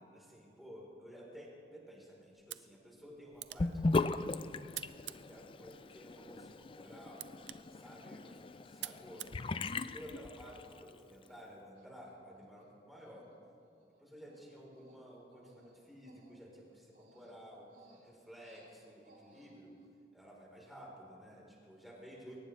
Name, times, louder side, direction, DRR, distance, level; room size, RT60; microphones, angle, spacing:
voice 1, 0.0-4.5 5.1-7.3 7.7-8.5 8.7-9.3 9.6-13.3 14.0-17.7 18.0-19.7 20.1-22.4, equal, ahead, -4 dB, 3.9 m, -53 dB
sound 1, 2.3-10.3, right 15 dB, 90° right, 0.5 m, -51 dB
Sink (filling or washing) / Bathtub (filling or washing), 3.6-10.9, left 3 dB, 30° left, 0.4 m, -38 dB
Human voice, 8.7-9.1 9.7-9.8 10.1-10.3 10.6-10.8 11.2-11.4 11.7-12.7 13.0-13.3 13.6-19.9, right 1 dB, 70° right, 4.2 m, -66 dB
22.0 x 19.0 x 3.3 m, 2.6 s
head